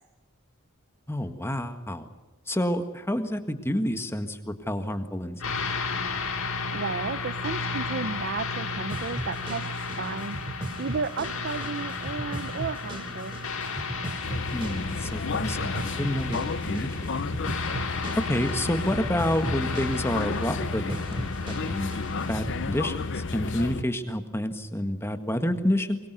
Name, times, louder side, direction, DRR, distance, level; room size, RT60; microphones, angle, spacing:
voice 1, 1.1-2.1 2.5-5.4 14.5-16.4 16.6-17.1 18.2-21.9 22.3-26.0, left 1 dB, 10° left, 7 dB, 1.7 m, -29 dB
sound 1, 5.4-23.7, left 4 dB, 80° left, 4.5 m, -34 dB
voice 2, 6.7-13.4, right 4 dB, 50° right, 12 dB, 0.7 m, -33 dB
sound 2, 8.9-22.6, right 1 dB, 25° right, 2.9 m, -38 dB
sound 3, 14.2-23.8, left 4 dB, 60° left, 0.7 m, -32 dB
24.5 x 22.0 x 6.8 m, 1.2 s
head